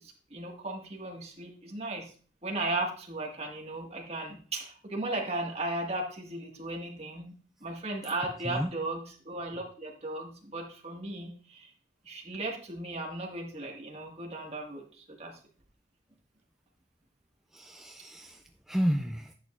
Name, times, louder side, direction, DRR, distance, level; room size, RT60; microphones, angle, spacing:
voice 1, 0.0-2.1 2.4-7.3 7.6-11.7 12.1-15.3, right 2 dB, 35° right, 0 dB, 1.8 m, -36 dB
voice 2, 17.5-19.3, equal, ahead, 4 dB, 0.4 m, -32 dB
10.5 x 8.2 x 2.5 m, 0.42 s
head